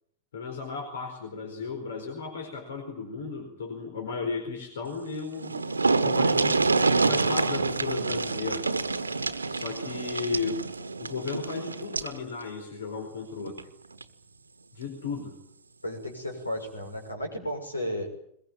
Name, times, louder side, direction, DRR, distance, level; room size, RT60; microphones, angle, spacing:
voice 1, 0.3-5.6 6.0-6.6 7.1-8.7 9.5-10.6 11.0-13.6 14.8-15.4, left 4 dB, 65° left, 4 dB, 4.5 m, -35 dB
sound 1, 5.1-5.2 5.4-12.2 13.5-13.6 14.0-14.1, right 3 dB, 80° right, 1.1 m, -27 dB
voice 2, 15.8-18.1, equal, 80° left, 3 dB, 6.1 m, -33 dB
22.0 x 21.5 x 9.0 m, 0.69 s
figure-of-eight pair, 90°, 0 cm